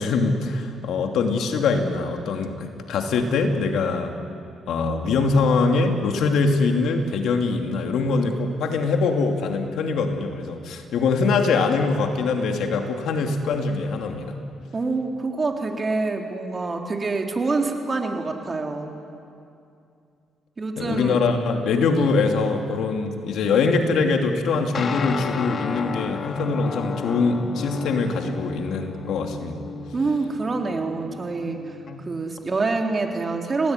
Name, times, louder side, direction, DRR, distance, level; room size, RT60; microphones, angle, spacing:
voice 1, 0.0-4.1 4.7-14.4 20.8-29.6, left 4 dB, 75° left, 4 dB, 2.9 m, -23 dB
voice 2, 14.7-18.9 20.6-21.2 29.9-31.6 32.0-33.7, right 3 dB, 30° right, 2 dB, 3.5 m, -26 dB
Guitar, 24.7-32.4, left 5 dB, 50° left, 1.7 m, -33 dB
30.0 x 18.5 x 9.6 m, 2.5 s
cardioid pair, 90°, 0 cm